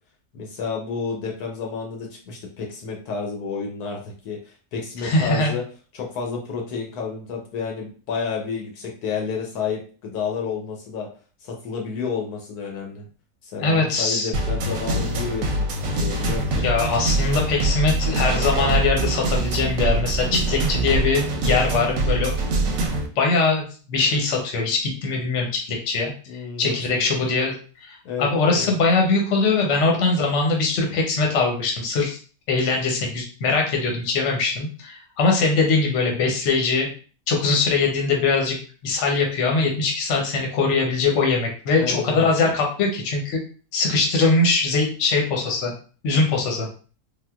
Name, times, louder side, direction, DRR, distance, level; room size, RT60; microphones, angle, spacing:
voice 1, 0.3-5.6 5.9-11.1 11.4-13.0 13.4-16.7 26.3-27.2 28.0-28.8 41.8-42.3, left 5 dB, 75° left, 1 dB, 1.2 m, -30 dB
voice 2, 5.0-5.5 13.6-14.3 16.6-22.3 23.2-27.5 27.8-32.2 32.5-36.9 37.3-38.6 38.8-43.4 43.7-45.7 46.0-46.7, left 3 dB, 55° left, 0 dB, 1.0 m, -22 dB
sound 1, 14.3-23.1, right 2 dB, 65° right, 0.9 m, -24 dB
3.5 x 2.5 x 2.4 m, 0.39 s
omnidirectional pair, 1.7 m